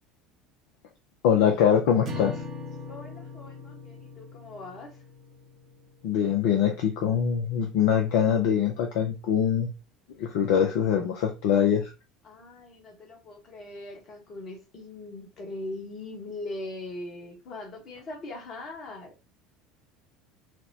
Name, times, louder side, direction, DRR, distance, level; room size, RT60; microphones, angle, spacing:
voice 1, 1.2-2.4 6.0-9.7 10.2-11.9, left 8 dB, 60° left, 0.5 m, -23 dB
sound 1, 2.0-6.4, left 3 dB, 45° right, 0.8 m, -41 dB
voice 2, 2.9-5.0 12.2-19.1, left 2 dB, 45° left, 1.2 m, -40 dB
4.1 x 2.2 x 2.7 m
figure-of-eight pair, 65°, 0 cm